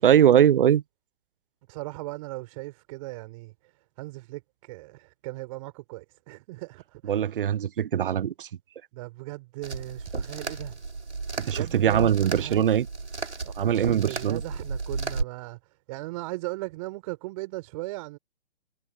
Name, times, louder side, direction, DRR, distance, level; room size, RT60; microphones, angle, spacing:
voice 1, 0.0-0.8 7.1-8.5 11.4-12.9 13.6-14.4, right 10 dB, 55° right, 0.8 m, -21 dB
voice 2, 1.7-3.7 4.0-7.2 8.9-10.8 11.5-12.8 13.4-15.6 15.9-18.2, right 21 dB, 30° right, 5.6 m, -38 dB
sound 1, 9.6-15.2, right 4 dB, 90° right, 7.1 m, -33 dB
hypercardioid pair, 145°, 33 cm